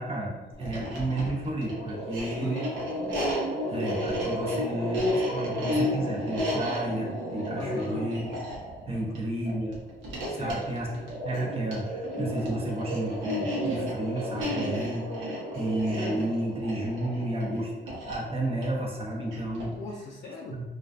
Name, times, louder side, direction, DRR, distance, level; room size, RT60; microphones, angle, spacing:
voice 1, 0.0-2.6 3.7-8.3 8.9-9.7 10.3-19.7 20.5-20.6, right 1 dB, 30° right, -2 dB, 0.7 m, -32 dB
sound 1, 0.6-19.8, equal, 80° right, 0.8 m, -32 dB
voice 2, 2.4-2.9 7.5-8.1 8.9-9.3 10.3-10.6 19.7-20.6, left 2 dB, 60° left, -2 dB, 0.4 m, -40 dB
2.3 x 2.3 x 2.4 m, 1.2 s
cardioid pair, 90°, 20 cm